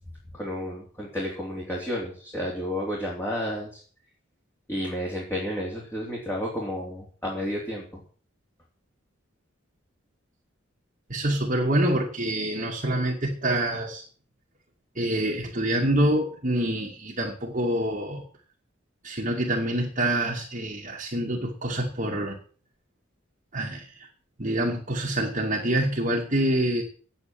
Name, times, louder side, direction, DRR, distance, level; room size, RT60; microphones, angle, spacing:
voice 1, 0.3-3.8 4.7-7.8, equal, 10° left, -3 dB, 3.3 m, -31 dB
voice 2, 11.1-14.0 15.0-18.2 19.0-22.4 23.5-24.1 24.4-26.8, right 1 dB, 40° right, -3 dB, 2.4 m, -26 dB
10.0 x 8.9 x 7.8 m, 0.43 s
head